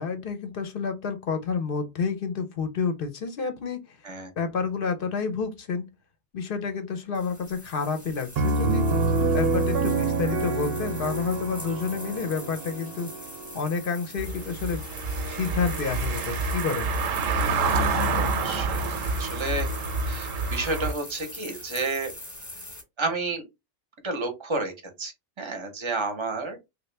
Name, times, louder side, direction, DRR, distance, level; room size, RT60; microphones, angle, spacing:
voice 1, 0.0-4.0 4.4-5.9 6.3-8.8 9.3-13.1 13.5-14.8 15.3-16.9, left 5 dB, 55° left, 0.6 m, -29 dB
sound 1, 7.1-22.8, left 1 dB, 15° left, 0.8 m, -42 dB
Piano, 8.4-13.9, right 3 dB, 60° right, 0.7 m, -27 dB
Car passing by / Engine, 14.2-20.9, right 3 dB, 85° right, 1.0 m, -27 dB
voice 2, 17.9-18.8 19.2-19.7 20.1-22.1 23.0-23.4 24.0-24.7 25.0-26.6, right 2 dB, 30° right, 0.6 m, -31 dB
3.2 x 2.3 x 3.2 m
omnidirectional pair, 1.3 m